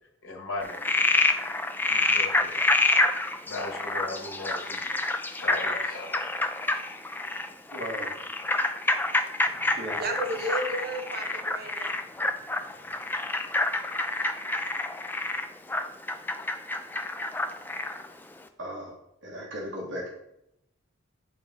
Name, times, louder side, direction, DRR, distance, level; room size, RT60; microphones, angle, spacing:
voice 1, 0.2-0.9 1.9-2.9 3.5-5.0 5.4-6.2, left 2 dB, 85° left, 1 dB, 1.4 m, -37 dB
Frog, 0.6-18.1, left 2 dB, 10° left, 0.3 m, -28 dB
voice 2, 7.7-8.2 9.7-10.0 10.4-10.5 18.6-18.9 19.2-20.1, equal, 70° right, -2 dB, 1.3 m, -36 dB
voice 3, 9.5-11.9, right 1 dB, 50° right, 4 dB, 0.9 m, -33 dB
8.2 x 3.6 x 3.9 m, 0.79 s
head